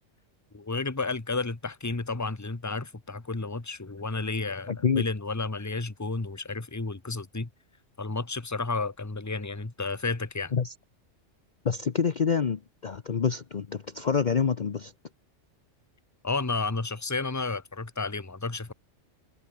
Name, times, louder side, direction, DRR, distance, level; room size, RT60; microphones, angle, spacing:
voice 1, 0.5-7.5 8.0-10.5 16.2-18.7, left 3 dB, 15° left, 1.2 m, -32 dB
voice 2, 11.6-14.9, left 6 dB, 40° left, 0.9 m, -27 dB
omnidirectional pair, 1.3 m